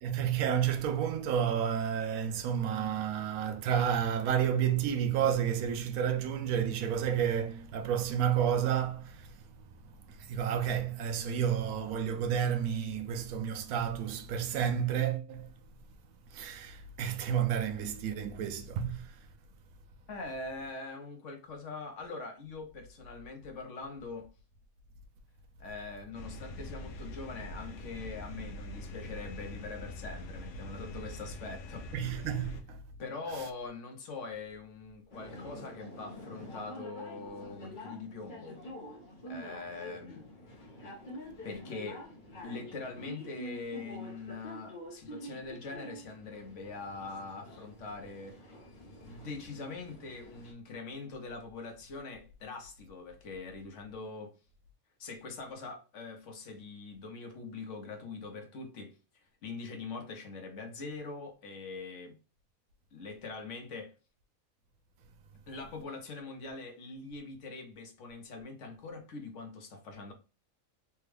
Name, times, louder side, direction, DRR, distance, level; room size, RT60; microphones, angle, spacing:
voice 1, 0.0-15.5 16.3-19.2 31.9-32.8, right 8 dB, 85° right, 1.0 m, -31 dB
voice 2, 20.1-24.3 25.6-31.9 33.0-38.6 39.3-40.2 41.2-42.0 42.4-48.4 49.0-54.4 55.0-59.0 59.4-62.2 62.9-63.9 65.5-70.1, left 3 dB, 65° left, 1.0 m, -43 dB
sound 1, 26.1-32.6, left 1 dB, 90° left, 1.1 m, -43 dB
sound 2, 35.1-50.5, equal, 40° left, 0.9 m, -47 dB
3.4 x 2.2 x 3.2 m
omnidirectional pair, 1.5 m